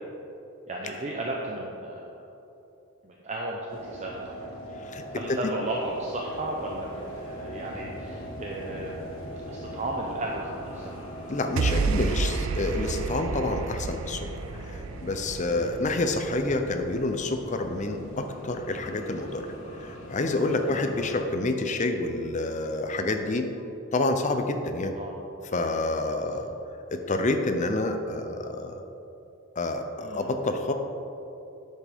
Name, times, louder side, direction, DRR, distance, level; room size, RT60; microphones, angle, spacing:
voice 1, 0.7-2.1 3.0-4.5 5.1-9.1 9.5-11.0 15.5-15.7 20.7-20.9 24.9-25.2 30.0-30.3, right 1 dB, 30° right, -2 dB, 0.7 m, -34 dB
sound 1, 3.7-21.2, equal, 70° left, 1.7 m, -41 dB
voice 2, 11.3-14.3 14.6-19.5 19.8-23.4 23.9-24.9 25.4-26.5 26.9-28.8 29.6-30.7, left 2 dB, 35° left, 6 dB, 0.6 m, -28 dB
sound 2, 11.6-18.0, right 4 dB, 70° right, 0.4 m, -31 dB
10.0 x 7.4 x 3.6 m, 2.9 s
head